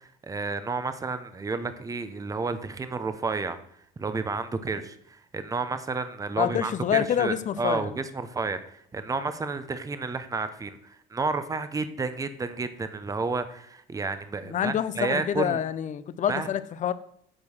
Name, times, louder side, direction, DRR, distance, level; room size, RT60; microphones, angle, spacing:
voice 1, 0.0-3.6 4.0-15.6 16.3-16.5, right 4 dB, 20° right, 11 dB, 0.8 m, -31 dB
voice 2, 6.4-7.9 14.4-16.9, left 9 dB, 45° left, 14 dB, 0.6 m, -27 dB
8.7 x 4.5 x 6.5 m, 0.67 s
cardioid pair, 105°, 18 cm